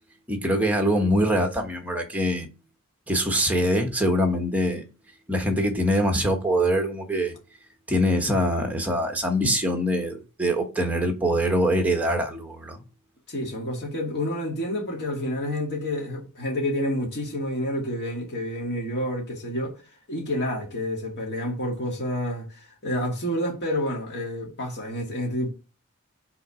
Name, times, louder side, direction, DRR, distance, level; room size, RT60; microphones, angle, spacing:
voice 1, 0.3-2.5 3.1-4.8 5.3-7.3 7.9-12.8, equal, 5° right, 1.1 m, -23 dB
voice 2, 13.3-19.7 20.1-25.5, left 1 dB, 50° left, 2.2 m, -29 dB
5.6 x 4.1 x 4.8 m
head